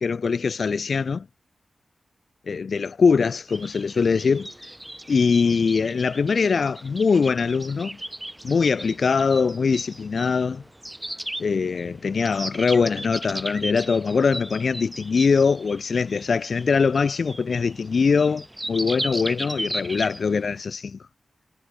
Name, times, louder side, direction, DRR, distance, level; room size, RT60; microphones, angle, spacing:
voice 1, 0.0-1.3 2.5-4.5 5.1-8.0 8.4-10.6 11.4-21.0, left 5 dB, 55° left, 0.4 m, -22 dB
sound 1, 3.5-20.6, right 1 dB, 5° right, 1.5 m, -37 dB
wide cardioid pair, 160°, 0 cm